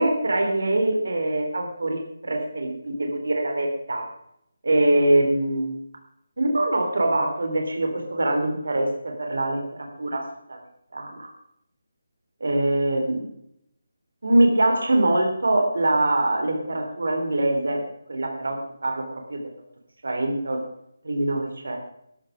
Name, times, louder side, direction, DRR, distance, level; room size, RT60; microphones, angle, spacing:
voice 1, 0.0-4.0 4.6-5.8 6.4-10.2 10.5-10.6 10.9-11.3 12.4-13.3 14.2-17.8 18.1-19.0 19.3-19.4 20.0-20.6 21.0-21.8, right 1 dB, 70° right, 3 dB, 3.5 m, -23 dB
12.5 x 12.0 x 5.1 m, 0.75 s
hypercardioid pair, 180°, 0 cm